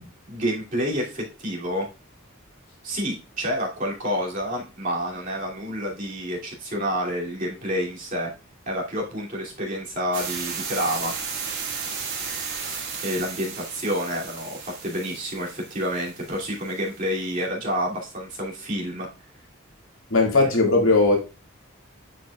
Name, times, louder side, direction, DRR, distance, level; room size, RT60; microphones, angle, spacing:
voice 1, 0.3-1.9 2.8-8.3 8.7-11.4 13.0-19.1, equal, 40° right, 2.6 m, -29 dB
sound 1, 10.1-17.0, right 6 dB, 60° right, 2.3 m, -34 dB
voice 2, 20.1-21.2, left 3 dB, 90° left, 2.0 m, -18 dB
9.9 x 5.1 x 2.3 m
head